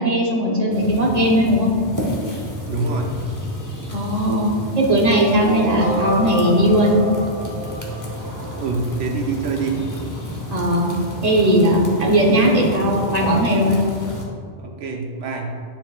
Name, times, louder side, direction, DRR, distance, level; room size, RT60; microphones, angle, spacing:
voice 1, 0.0-1.7 3.9-6.9 10.5-10.9 11.2-13.8, equal, 35° right, -2 dB, 1.0 m, -18 dB
sound 1, 0.7-14.2, equal, 20° left, 0.7 m, -31 dB
voice 2, 2.7-3.2 8.5-9.9 14.6-15.6, right 4 dB, 80° right, 2 dB, 1.1 m, -25 dB
sound 2, 5.4-9.3, right 1 dB, 45° left, 1.0 m, -28 dB
9.3 x 4.6 x 2.4 m, 2.1 s
omnidirectional pair, 1.2 m